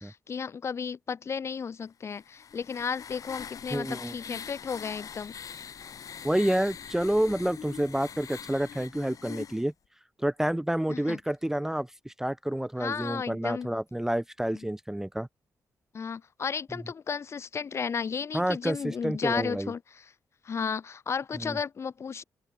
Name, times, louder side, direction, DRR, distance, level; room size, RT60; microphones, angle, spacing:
voice 1, 0.0-5.3 10.9-11.2 12.8-13.7 15.9-20.1 20.4-22.2, left 6 dB, 45° left, 0.6 m, -34 dB
sound 1, 2.1-9.6, left 7 dB, 60° left, 2.6 m, -43 dB
voice 2, 3.7-4.4 6.2-9.7 10.2-15.3 18.3-19.7 21.3-21.6, right 1 dB, 5° right, 0.4 m, -29 dB
cardioid pair, 105°, 7 cm